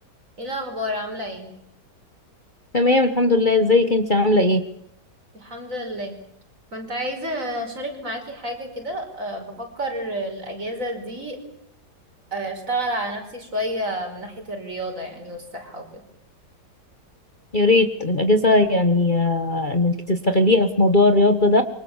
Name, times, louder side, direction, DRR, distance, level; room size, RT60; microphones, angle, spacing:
voice 1, 0.4-1.5 5.3-6.1 6.7-11.4 12.3-16.0, equal, 50° right, 4 dB, 5.5 m, -30 dB
voice 2, 2.7-4.6 17.5-21.6, left 2 dB, 30° left, 7 dB, 1.6 m, -18 dB
27.0 x 25.0 x 7.4 m, 0.71 s
omnidirectional pair, 1.8 m